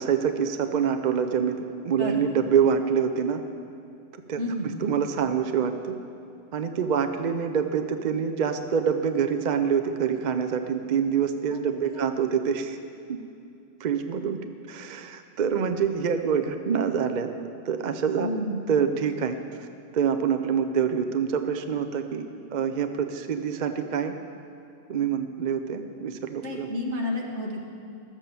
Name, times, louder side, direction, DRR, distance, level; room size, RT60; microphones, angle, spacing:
voice 1, 0.0-3.4 4.3-4.4 4.8-5.9 6.5-12.8 13.1-13.2 13.8-14.4 14.7-17.3 17.6-18.4 18.7-19.7 19.9-22.3 22.5-24.1 24.9-26.7, right 7 dB, 50° right, 7 dB, 0.6 m, -26 dB
voice 2, 4.4-4.7 11.5-12.0 18.2-18.7 26.4-27.6, left 1 dB, 70° right, 0 dB, 1.8 m, -31 dB
13.0 x 7.3 x 6.9 m, 2.6 s
omnidirectional pair, 1.3 m